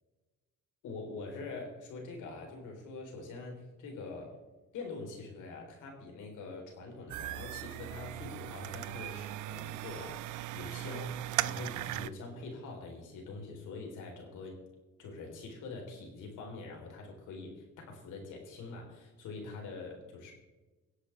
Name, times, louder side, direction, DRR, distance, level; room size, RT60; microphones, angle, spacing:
voice 1, 0.8-4.4 4.7-14.6 15.0-20.3, left 3 dB, 85° left, 1 dB, 4.0 m, -44 dB
sound 1, 7.1-12.1, right 15 dB, 80° right, 0.5 m, -38 dB
23.5 x 8.4 x 3.5 m, 1.2 s
cardioid pair, 90°, 30 cm